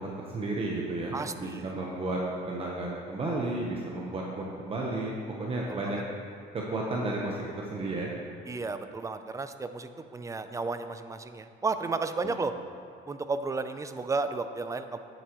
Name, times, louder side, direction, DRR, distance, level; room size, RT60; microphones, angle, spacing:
voice 1, 0.0-2.2 2.5-6.0 6.5-8.1 12.2-12.3, right 2 dB, 35° right, -2 dB, 1.1 m, -33 dB
voice 2, 1.1-1.6 5.7-6.0 8.5-12.5 13.1-15.0, right 3 dB, 20° right, 10 dB, 0.5 m, -33 dB
11.0 x 9.1 x 3.1 m, 2.5 s
cardioid pair, 110°, 17 cm